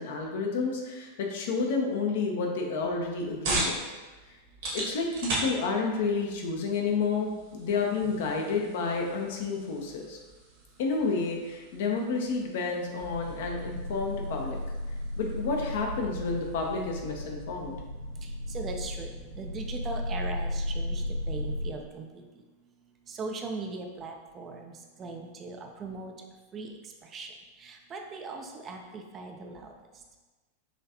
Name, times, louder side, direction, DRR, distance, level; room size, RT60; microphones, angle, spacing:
voice 1, 0.0-3.8 4.7-10.2 10.8-14.6 15.2-17.7, left 4 dB, 55° left, 1 dB, 0.8 m, -30 dB
sound 1, 2.8-17.9, right 2 dB, 55° right, 1.4 m, -40 dB
sound 2, 13.0-21.7, left 1 dB, 70° right, 1.2 m, -35 dB
voice 2, 18.2-22.2 23.1-26.1 26.5-29.7, right 3 dB, 25° right, 3 dB, 0.5 m, -40 dB
5.7 x 3.2 x 2.9 m, 1.2 s
figure-of-eight pair, 90°, 0 cm